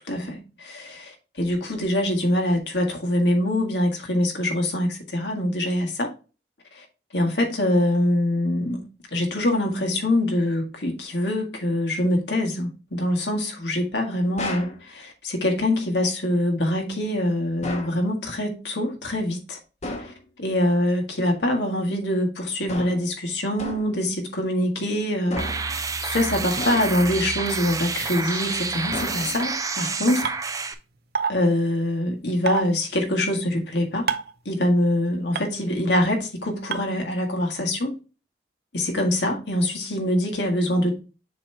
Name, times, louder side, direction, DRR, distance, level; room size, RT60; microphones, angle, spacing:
voice 1, 0.1-6.1 6.7-6.8 7.1-8.8 9.1-19.6 20.0-25.4 25.6-30.3 31.3-34.1 34.4-37.9 38.7-41.0, left 1 dB, 80° left, 1.7 m, -24 dB
sound 1, 14.4-14.8 17.6-18.0 19.8-20.2 22.7-23.1 23.6-24.0 25.3-25.8 26.6-27.2 28.9-29.6, left 2 dB, 40° left, 1.0 m, -33 dB
sound 2, 25.4-30.7, right 4 dB, 20° right, 0.5 m, -29 dB
sound 3, 30.2-30.3 31.1-31.3 32.5-32.6 34.1-34.3 35.3-35.4 36.7-36.8, right 6 dB, 60° right, 0.6 m, -24 dB
7.0 x 3.1 x 4.4 m
head